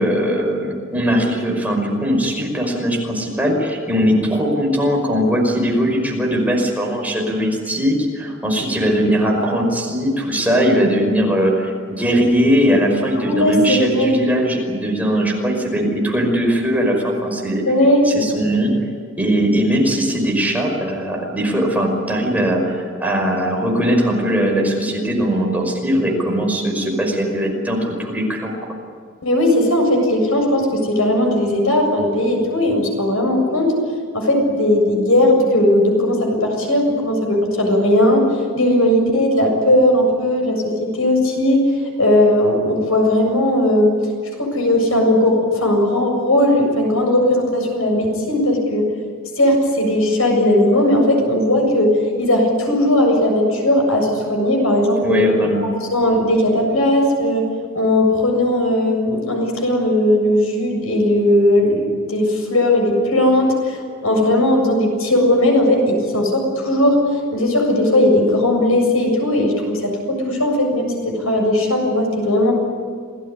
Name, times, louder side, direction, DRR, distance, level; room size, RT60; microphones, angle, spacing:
voice 1, 0.0-17.6 18.1-18.7 19.2-28.6 55.0-55.7, equal, 10° right, 0 dB, 5.4 m, -19 dB
voice 2, 13.2-14.2 17.7-18.1 29.2-33.7 34.1-38.3 38.5-41.6 42.0-44.0 44.4-48.9 49.4-55.2 55.6-57.4 57.7-72.5, left 1 dB, 80° left, 2 dB, 7.5 m, -17 dB
28.0 x 18.5 x 10.0 m, 2.1 s
head